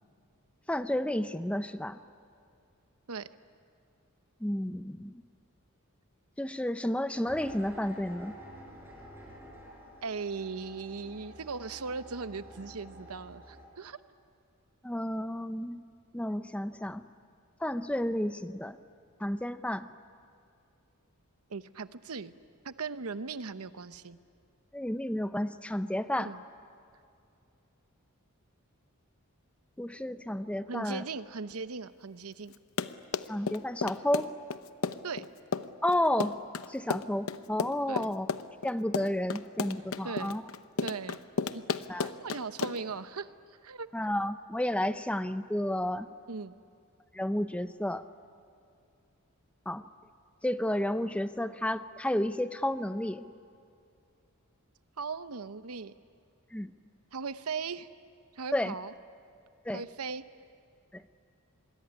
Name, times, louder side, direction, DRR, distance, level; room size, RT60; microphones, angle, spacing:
voice 1, 0.7-2.0 4.4-5.2 6.4-8.4 14.8-15.8 16.1-17.1 17.6-18.8 19.2-19.9 24.7-26.3 29.8-31.0 33.3-34.3 35.8-36.4 36.7-38.3 38.6-40.4 41.9-42.1 43.9-46.1 47.1-48.0 49.7-49.9 50.4-53.3 56.5-56.7 58.5-58.7 59.7-59.8 60.9-61.0, left 1 dB, 5° left, 11 dB, 0.6 m, -31 dB
sound 1, 7.3-13.7, equal, 10° right, 6.4 m, -49 dB
voice 2, 10.0-14.0 21.5-22.3 22.6-24.2 26.2-26.4 30.7-32.5 35.0-35.3 37.9-38.1 40.0-40.4 40.8-41.2 41.5-41.7 42.0-43.3 43.6-43.9 46.3-46.5 55.0-55.9 57.1-57.9 58.3-58.9 59.7-60.2, right 4 dB, 80° right, 13 dB, 0.9 m, -38 dB
Run, 32.5-43.0, left 4 dB, 65° left, 0.8 m, -33 dB
27.0 x 22.0 x 9.9 m, 2.4 s
head